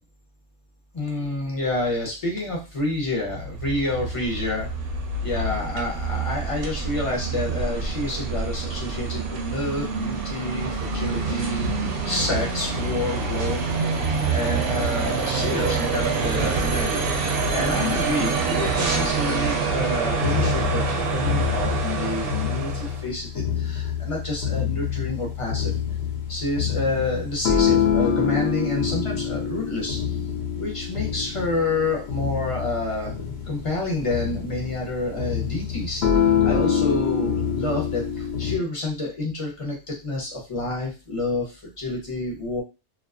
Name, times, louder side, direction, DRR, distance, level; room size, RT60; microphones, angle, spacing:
voice 1, 0.9-4.7 5.2-11.8 12.0-14.0 14.3-25.7 26.3-30.2 30.5-42.6, left 2 dB, 35° left, -1 dB, 0.6 m, -29 dB
sound 1, 3.2-23.0, right 4 dB, 65° right, 0.7 m, -26 dB
sound 2, 20.1-38.6, left 8 dB, 70° left, 0.8 m, -26 dB
2.3 x 2.3 x 2.3 m, 0.30 s
omnidirectional pair, 1.2 m